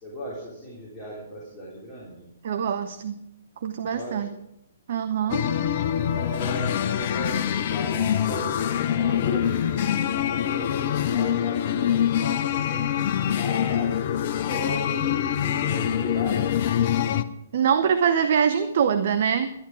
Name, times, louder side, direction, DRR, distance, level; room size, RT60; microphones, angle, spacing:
voice 1, 0.0-2.3 3.8-4.4 5.2-5.7 6.1-14.0 14.4-16.6, equal, 15° left, -6 dB, 3.5 m, -37 dB
voice 2, 2.4-3.2 3.6-4.3 4.9-5.5 17.5-19.5, right 7 dB, 50° right, 9 dB, 0.7 m, -23 dB
sound 1, 5.3-17.2, left 9 dB, 45° left, 0.6 m, -25 dB
12.0 x 11.5 x 4.7 m, 0.83 s
figure-of-eight pair, 125°, 0 cm